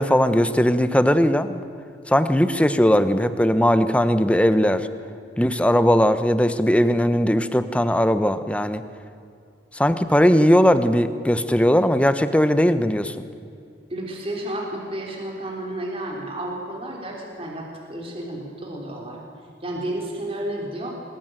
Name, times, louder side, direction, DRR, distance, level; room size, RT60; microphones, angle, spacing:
voice 1, 0.0-1.6 2.1-4.9 5.4-8.8 9.7-13.1, equal, 5° left, 11 dB, 1.1 m, -19 dB
voice 2, 13.9-19.2 19.6-20.9, right 1 dB, 30° right, -1 dB, 3.8 m, -31 dB
24.5 x 20.0 x 9.2 m, 2.5 s
head